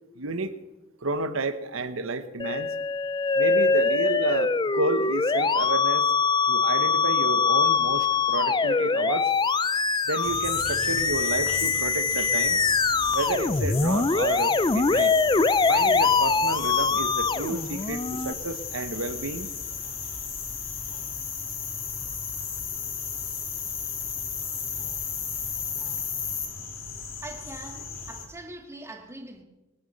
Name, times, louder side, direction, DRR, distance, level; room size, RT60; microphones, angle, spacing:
voice 1, 0.1-0.5 1.0-2.7 3.4-6.1 6.5-9.3 10.1-12.6 13.1-15.1 15.7-19.5, right 3 dB, 80° right, 1.2 m, -31 dB
Musical instrument, 2.4-18.3, left 4 dB, 20° left, 0.4 m, -23 dB
sound 1, 9.3-26.5, left 7 dB, 85° left, 4.3 m, -37 dB
sound 2, 10.2-28.3, left 5 dB, 70° left, 3.1 m, -38 dB
voice 2, 27.2-29.4, right 2 dB, 15° right, 2.0 m, -42 dB
21.5 x 9.8 x 6.6 m
head